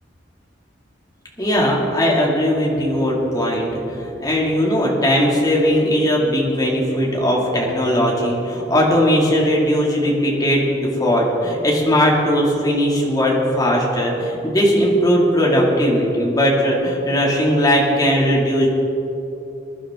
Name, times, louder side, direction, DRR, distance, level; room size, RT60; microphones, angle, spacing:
voice 1, 1.4-18.7, equal, 20° left, -3 dB, 2.6 m, -18 dB
22.0 x 11.5 x 3.8 m, 2.9 s
head